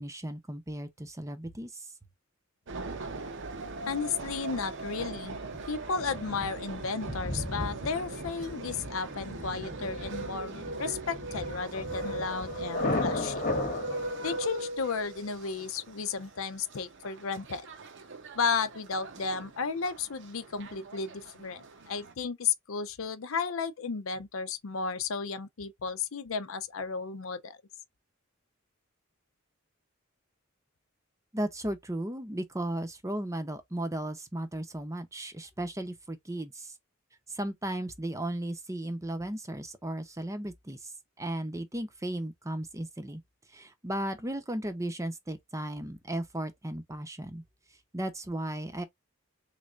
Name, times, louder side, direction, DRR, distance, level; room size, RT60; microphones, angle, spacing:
voice 1, 0.0-1.9 31.3-36.7 37.3-43.2 43.5-47.4 47.9-48.8, right 1 dB, 15° right, 0.7 m, -35 dB
sound 1, 2.7-22.1, right 2 dB, 60° right, 0.8 m, -40 dB
voice 2, 3.9-5.4 5.7-13.4 14.2-17.7 18.3-27.6, left 5 dB, 80° left, 0.6 m, -33 dB
Thunder, 5.5-14.5, left 2 dB, 45° left, 1.1 m, -36 dB
3.7 x 3.2 x 2.4 m
head